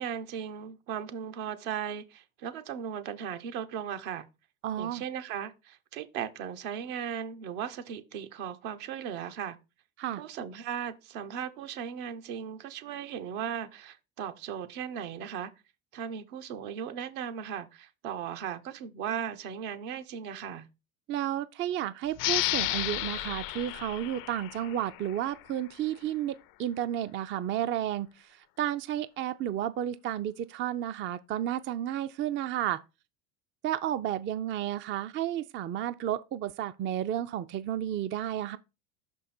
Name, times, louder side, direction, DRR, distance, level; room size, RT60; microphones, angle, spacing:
voice 1, 0.0-4.3 4.8-9.6 10.2-15.5 15.9-20.7, right 8 dB, 75° right, 1.1 m, -37 dB
voice 2, 4.6-5.0 10.0-10.2 21.1-28.3 28.6-32.8 33.6-38.6, right 11 dB, 30° right, 0.4 m, -32 dB
sound 1, 22.2-25.4, left 16 dB, 50° left, 0.5 m, -32 dB
5.7 x 5.3 x 4.3 m
supercardioid pair, 100°, 42 cm